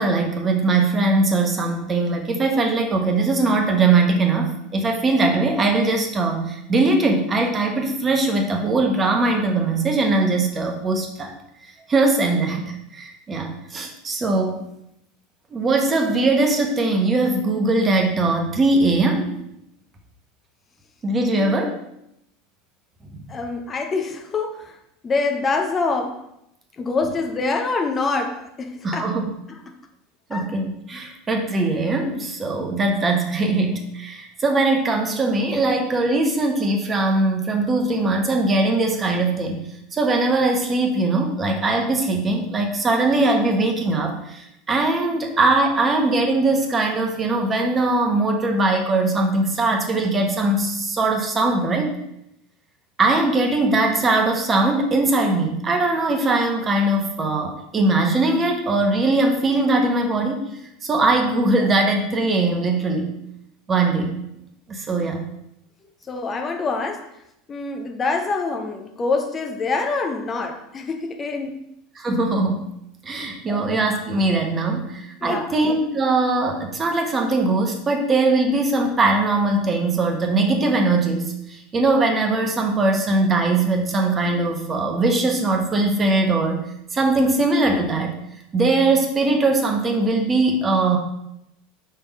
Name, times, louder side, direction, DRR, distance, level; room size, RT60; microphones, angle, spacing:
voice 1, 0.0-11.3 11.9-14.6 15.5-19.3 21.0-21.8 28.8-29.3 30.3-39.6 39.9-51.9 53.0-60.5 60.8-63.1 63.7-64.1 64.7-65.2 71.9-72.6 73.0-86.6 86.9-88.1 88.5-91.0, right 2 dB, 25° right, 1.1 m, -21 dB
voice 2, 23.3-24.8 25.0-26.2 26.8-29.2 29.5-29.6 30.3-30.5 66.1-67.1 67.5-71.6 73.5-73.6 75.2-75.5, left 3 dB, 25° left, 0.7 m, -25 dB
5.6 x 3.6 x 4.8 m
figure-of-eight pair, 75°, 0 cm